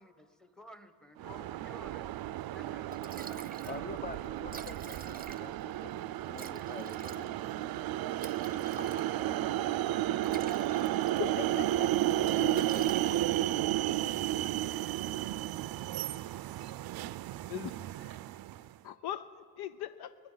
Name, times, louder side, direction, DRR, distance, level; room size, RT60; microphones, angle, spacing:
voice 1, 0.0-4.1, equal, ahead, 1.2 m, -54 dB
sound 1, 1.2-18.7, right 14 dB, 60° right, 0.5 m, -33 dB
Liquid, 2.5-2.6 2.9-3.8 4.1-4.2 4.4-5.7 6.3-9.4 10.0-11.6 11.9-12.1 12.5-13.5, right 4 dB, 20° right, 0.7 m, -48 dB
voice 2, 3.7-8.0 10.9-12.9, left 3 dB, 20° left, 0.8 m, -47 dB
voice 3, 11.2-12.5 17.5-18.2 18.8-20.2, left 11 dB, 70° left, 0.6 m, -41 dB
25.5 x 10.0 x 3.9 m
supercardioid pair, 65°, 41 cm